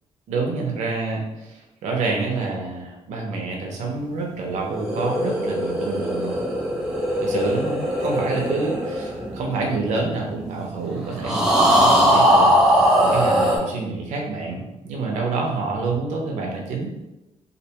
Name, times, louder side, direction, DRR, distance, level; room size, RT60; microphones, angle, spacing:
voice 1, 0.3-6.4 7.2-16.9, right 3 dB, 90° right, 0 dB, 0.6 m, -28 dB
sound 1, 4.6-10.2 11.2-13.6, equal, 5° right, 0.4 m, -20 dB
2.5 x 2.1 x 2.7 m, 0.95 s
cardioid pair, 160°, 12 cm